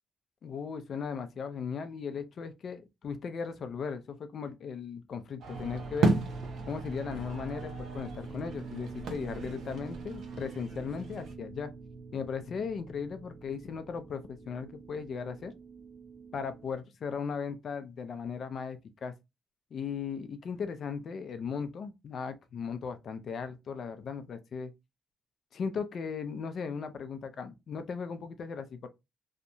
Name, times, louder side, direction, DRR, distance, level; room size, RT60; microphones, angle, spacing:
voice 1, 0.4-6.1 6.7-11.7 12.1-15.5 16.3-19.1 19.7-24.7 25.5-28.9, left 6 dB, 55° left, 0.4 m, -37 dB
sound 1, 5.4-11.3, right 2 dB, 70° right, 0.6 m, -34 dB
sound 2, 5.5-16.7, right 4 dB, 25° right, 0.7 m, -44 dB
2.7 x 2.1 x 2.6 m
cardioid pair, 90°, 0 cm